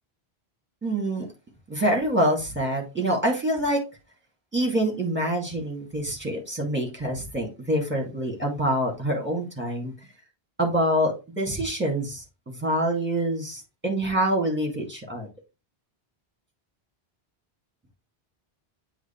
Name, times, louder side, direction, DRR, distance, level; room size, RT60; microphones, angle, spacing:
voice 1, 0.8-1.3 1.7-3.8 4.5-9.9 10.6-15.3, right 1 dB, 10° right, 2.2 m, -26 dB
8.0 x 3.2 x 4.5 m
omnidirectional pair, 1.1 m